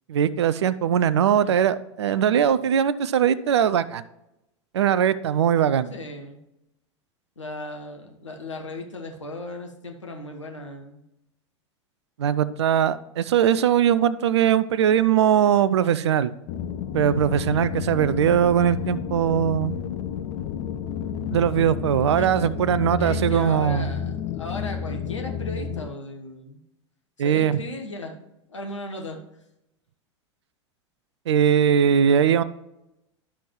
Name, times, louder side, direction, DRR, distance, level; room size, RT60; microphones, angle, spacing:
voice 1, 0.1-4.0 4.7-5.9 12.2-16.3 16.9-19.7 21.3-23.9 27.2-27.6 31.3-32.4, right 9 dB, 65° right, 16 dB, 0.4 m, -20 dB
voice 2, 1.3-1.6 5.9-6.4 7.4-11.0 22.1-22.4 23.0-26.6 27.2-28.2 28.5-29.2, left 1 dB, 75° left, 3 dB, 1.2 m, -36 dB
sound 1, 16.5-25.9, left 8 dB, 45° left, 0.5 m, -31 dB
11.5 x 6.0 x 3.1 m, 0.89 s
figure-of-eight pair, 85°, 16 cm